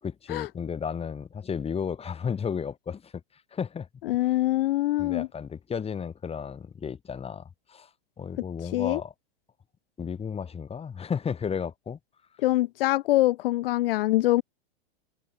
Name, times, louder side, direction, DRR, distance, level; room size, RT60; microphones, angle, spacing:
voice 1, 0.0-3.9 5.0-7.9 8.2-9.1 10.0-12.0, left 7 dB, 20° left, 4.2 m, -33 dB
voice 2, 4.0-5.3 8.7-9.0 12.4-14.4, left 17 dB, 65° left, 0.8 m, -24 dB
hypercardioid pair, 115°, 30 cm